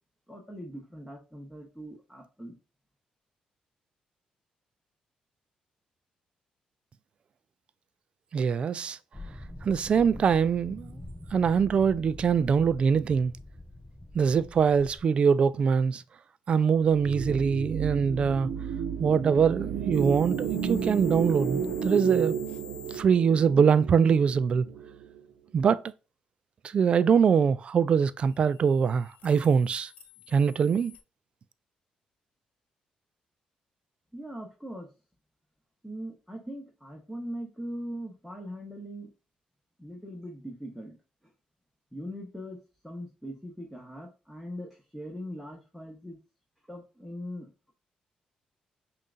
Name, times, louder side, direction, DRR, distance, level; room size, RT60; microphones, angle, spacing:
voice 1, 0.3-2.5 34.1-34.9 35.8-39.1 39.8-41.0 41.9-46.2 46.7-47.5, equal, ahead, 1.0 m, -41 dB
voice 2, 8.3-9.0 9.6-11.0 11.3-13.3 14.1-16.0 16.5-18.5 19.0-22.4 22.9-24.7 25.5-25.8 26.7-29.9 30.3-30.9, right 6 dB, 50° right, 0.3 m, -23 dB
sound 1, 9.1-15.0, left 1 dB, 15° left, 2.4 m, -44 dB
sound 2, 16.8-25.2, right 7 dB, 70° right, 0.8 m, -32 dB
sound 3, 19.9-23.0 28.2-31.0, left 4 dB, 75° left, 1.1 m, -50 dB
5.5 x 2.6 x 2.5 m
cardioid pair, 95°, 2 cm